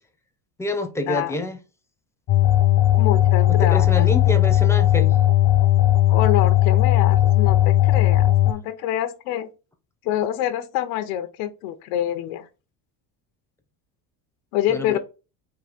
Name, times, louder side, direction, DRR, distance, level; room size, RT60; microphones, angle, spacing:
voice 1, 0.6-1.6 3.5-5.1 14.7-15.0, left 1 dB, 5° left, 0.7 m, -27 dB
sound 1, 2.3-8.5, left 13 dB, 45° left, 0.7 m, -17 dB
voice 2, 2.9-4.0 6.1-9.5 10.0-12.5 14.5-15.0, left 11 dB, 85° left, 0.8 m, -26 dB
4.8 x 2.6 x 4.1 m
cardioid pair, 135°, 45 cm